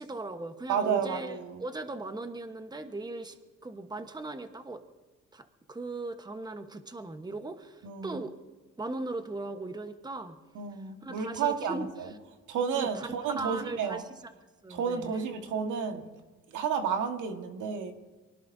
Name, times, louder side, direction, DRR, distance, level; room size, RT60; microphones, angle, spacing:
voice 1, 0.0-3.4 3.6-4.8 5.3-8.4 8.8-10.4 10.7-11.9 12.7-13.1 13.3-14.3 14.6-15.2, right 2 dB, 15° right, 7 dB, 1.2 m, -38 dB
voice 2, 0.7-1.6 7.8-8.2 10.5-12.1 12.5-14.0 14.7-16.1 16.5-17.9, right 6 dB, 80° right, 5 dB, 1.7 m, -31 dB
24.0 x 18.0 x 2.7 m, 1.3 s
cardioid pair, 90°, 30 cm